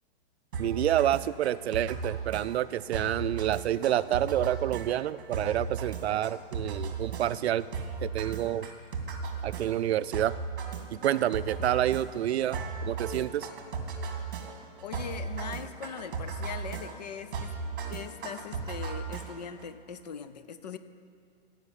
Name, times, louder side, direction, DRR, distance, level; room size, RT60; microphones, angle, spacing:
sound 1, 0.5-19.6, right 4 dB, 55° right, 2.0 m, -36 dB
voice 1, 0.6-7.7 8.0-8.7 9.4-10.4 10.9-13.5, right 12 dB, 80° right, 17 dB, 0.5 m, -28 dB
voice 2, 14.8-17.5 17.9-20.8, left 7 dB, 40° left, 11 dB, 0.6 m, -41 dB
16.5 x 5.6 x 9.0 m, 2.3 s
hypercardioid pair, 175°, 32 cm